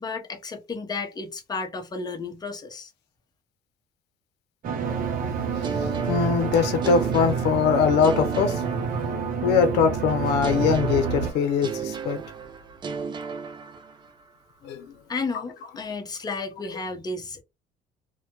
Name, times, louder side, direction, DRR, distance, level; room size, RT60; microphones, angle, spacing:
voice 1, 0.0-2.9 15.1-17.4, left 4 dB, 25° left, 0.7 m, -32 dB
sound 1, 4.6-11.3, right 6 dB, 55° right, 0.7 m, -28 dB
voice 2, 5.6-12.2 14.6-14.9, left 6 dB, 85° left, 0.6 m, -23 dB
sound 2, 5.6-9.6 10.4-14.3, right 5 dB, 25° right, 0.4 m, -35 dB
2.2 x 2.1 x 2.9 m
cardioid pair, 110°, 17 cm